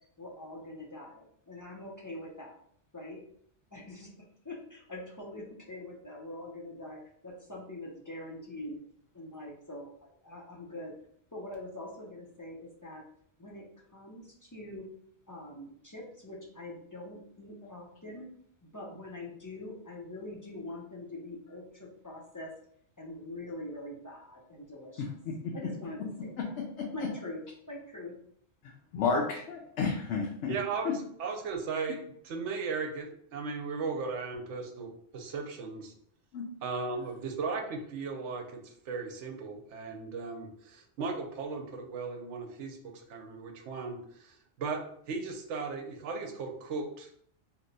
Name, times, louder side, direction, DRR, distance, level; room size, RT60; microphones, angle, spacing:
voice 1, 0.2-2.5 2.9-3.2 3.7-4.1 4.4-8.8 9.1-10.9 11.3-13.0 13.4-14.9 15.3-18.3 18.6-22.5 23.0-25.0 25.5-26.5 26.9-27.4 27.7-28.1, left 1 dB, 25° left, -4 dB, 0.4 m, -44 dB
voice 2, 25.0-25.5 26.8-26.9 28.9-30.5 30.8-30.9 36.3-36.4, left 5 dB, 75° left, -1 dB, 0.9 m, -31 dB
voice 3, 30.5-32.0 32.2-35.9 36.6-47.1, right 4 dB, 80° right, 2 dB, 0.9 m, -37 dB
2.8 x 2.2 x 3.9 m, 0.66 s
omnidirectional pair, 1.2 m